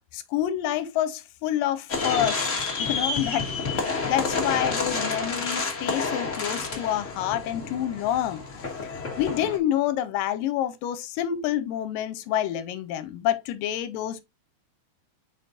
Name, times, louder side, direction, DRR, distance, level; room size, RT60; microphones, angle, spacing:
voice 1, 0.1-2.5 2.8-3.5 4.1-8.4 9.2-14.2, left 11 dB, 90° left, 2.3 m, -27 dB
sound 1, 1.9-9.6, left 4 dB, 60° left, 0.8 m, -29 dB
7.8 x 5.1 x 2.5 m
omnidirectional pair, 4.0 m